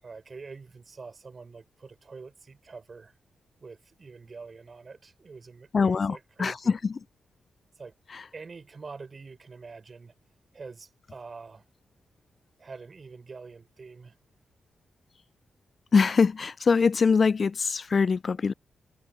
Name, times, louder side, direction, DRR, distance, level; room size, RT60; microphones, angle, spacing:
voice 1, 0.0-3.2 3.6-6.8 7.8-8.0 8.3-10.1 10.5-11.7 12.6-14.2, right 4 dB, 45° right, 5.5 m, -45 dB
voice 2, 5.7-6.5 15.9-18.5, left 5 dB, 50° left, 0.3 m, -23 dB
cardioid pair, 60°, 0 cm